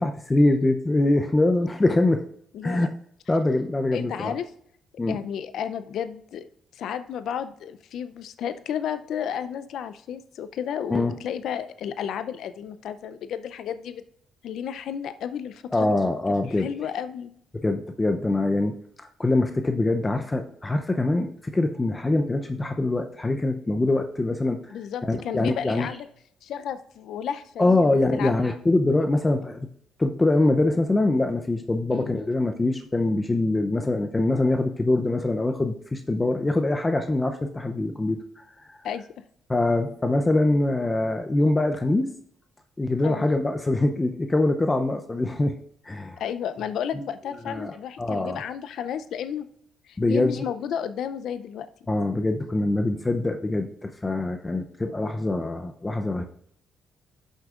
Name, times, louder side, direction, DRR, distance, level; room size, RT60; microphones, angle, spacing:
voice 1, 0.0-2.2 2.6-2.9 3.3-4.4 5.0-5.2 10.9-11.2 15.7-16.7 17.5-18.8 19.2-24.6 25.0-26.0 27.6-29.7 30.0-38.2 38.7-38.8 39.5-42.1 42.8-45.6 45.9-46.2 46.9-48.4 50.0-50.4 51.9-56.2, left 2 dB, 20° left, 6 dB, 0.5 m, -24 dB
voice 2, 2.5-2.9 3.9-4.5 5.1-6.5 6.7-14.0 14.4-16.0 16.6-17.3 24.7-26.1 26.4-28.3 31.9-32.1 38.8-39.1 43.0-43.3 46.2-49.4 49.9-51.7, left 8 dB, 75° left, 12 dB, 0.5 m, -32 dB
11.5 x 6.4 x 2.4 m, 0.67 s
cardioid pair, 90°, 0 cm